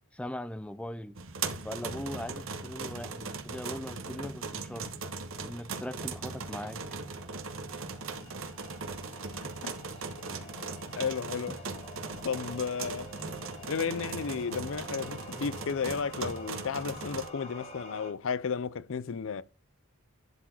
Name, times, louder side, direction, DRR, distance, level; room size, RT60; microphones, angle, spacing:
voice 1, 0.1-1.2 1.6-4.9 5.4-6.8 11.5-11.6 12.0-12.2 13.2-13.4 15.4-15.7, left 1 dB, 5° left, 0.5 m, -40 dB
sound 1, 1.2-17.3, right 4 dB, 65° right, 1.2 m, -39 dB
sound 2, 4.9-18.1, left 1 dB, 30° left, 2.1 m, -49 dB
voice 2, 10.5-11.6 12.2-13.1 13.7-19.4, left 6 dB, 60° left, 0.5 m, -33 dB
11.0 x 4.6 x 4.5 m
head